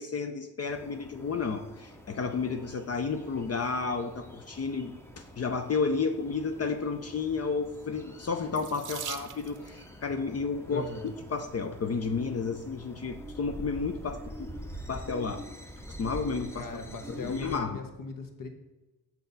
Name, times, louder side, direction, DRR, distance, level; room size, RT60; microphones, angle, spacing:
voice 1, 0.0-14.5 14.9-15.4 16.0-16.7 17.1-17.8, left 4 dB, 40° left, 7 dB, 0.5 m, -32 dB
sound 1, 0.7-17.6, equal, 5° left, 0.7 m, -45 dB
Water tap faucet / Sink (filling or washing), 8.5-9.8 10.8-11.2 11.9-12.0 12.3-12.5, right 9 dB, 50° right, 0.6 m, -41 dB
voice 2, 10.7-11.1 16.6-18.5, left 4 dB, 55° left, 6 dB, 1.2 m, -39 dB
6.9 x 6.3 x 4.0 m, 1.1 s
cardioid pair, 110°, 41 cm